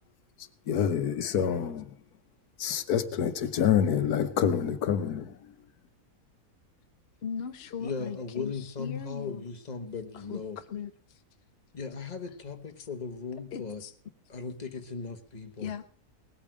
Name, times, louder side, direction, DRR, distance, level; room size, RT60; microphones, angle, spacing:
voice 1, 0.7-1.8 2.6-5.4, left 8 dB, 80° left, 1.4 m, -27 dB
voice 2, 7.2-9.4 10.3-10.9 13.5-13.9 15.6-16.0, left 7 dB, 50° left, 0.9 m, -38 dB
voice 3, 7.8-10.6 11.7-13.8 14.3-15.7, left 5 dB, 30° left, 1.4 m, -37 dB
18.5 x 8.7 x 6.1 m
omnidirectional pair, 1.6 m